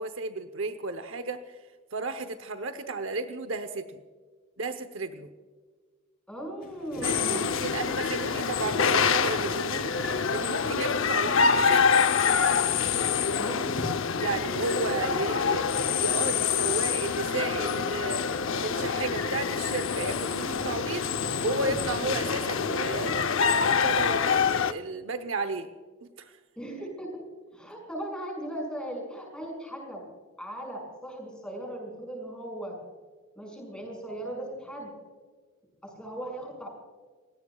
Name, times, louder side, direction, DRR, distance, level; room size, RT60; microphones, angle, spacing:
voice 1, 0.0-1.6 1.9-4.0 4.6-5.3 7.0-12.1 14.2-15.7 16.0-25.7 26.0-26.4, right 3 dB, 60° right, 9 dB, 0.8 m, -33 dB
voice 2, 6.3-7.5 13.4-13.6 26.6-27.3 27.5-30.0 30.4-32.8 33.4-34.9 35.8-36.7, right 1 dB, 5° left, 0 dB, 6.0 m, -38 dB
sound 1, 6.6-24.2, equal, 45° left, 6.0 m, -45 dB
sound 2, 7.0-24.7, left 6 dB, 65° left, 0.7 m, -26 dB
30.0 x 17.0 x 2.3 m, 1.5 s
head